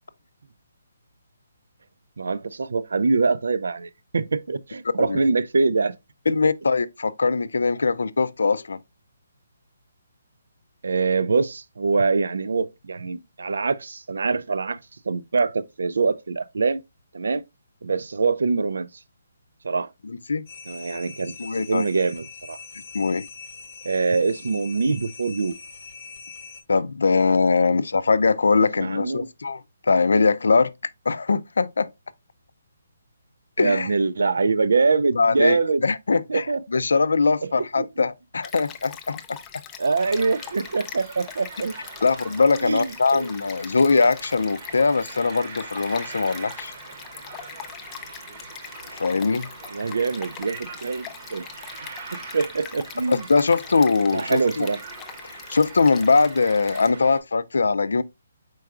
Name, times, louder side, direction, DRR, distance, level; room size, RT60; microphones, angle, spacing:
voice 1, 2.2-5.9 10.8-14.8 15.1-16.8 17.1-17.4 17.8-18.9 19.6-19.9 20.7-21.3 21.7-22.6 23.8-25.5 28.8-29.3 33.6-35.8 36.3-36.6 37.4-37.5 37.8-37.9 39.8-41.7 42.6-42.9 43.1-43.3 49.7-51.5 52.1-53.3 54.1-54.8, right 4 dB, 75° right, 0.4 m, -24 dB
voice 2, 6.3-8.8 20.0-20.4 21.4-21.9 22.9-23.3 26.7-31.9 33.6-33.9 35.1-39.4 42.0-46.7 48.9-49.5 53.1-54.7 55.2-58.0, left 4 dB, 85° left, 0.4 m, -22 dB
sound 1, 20.5-26.6, left 5 dB, 45° left, 0.7 m, -42 dB
Stream, 38.4-56.9, left 8 dB, 10° left, 0.3 m, -42 dB
sound 2, 40.0-57.2, right 4 dB, 35° right, 0.8 m, -42 dB
4.7 x 4.5 x 2.4 m
hypercardioid pair, 175°, 0 cm